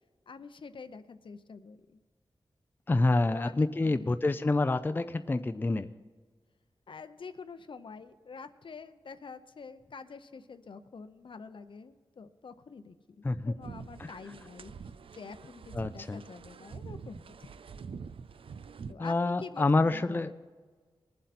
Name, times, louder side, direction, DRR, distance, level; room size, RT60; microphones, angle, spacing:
voice 1, 0.3-2.0 3.3-4.4 6.9-14.7 15.1-17.5 18.9-20.5, left 5 dB, 65° left, 10 dB, 0.7 m, -47 dB
voice 2, 2.9-5.9 13.2-13.5 14.0-14.1 15.7-16.2 19.0-20.3, left 2 dB, 20° left, 10 dB, 0.4 m, -27 dB
sound 1, 13.6-18.9, right 5 dB, 85° right, 0.4 m, -45 dB
20.5 x 7.7 x 4.2 m, 1.5 s
wide cardioid pair, 115°, 9 cm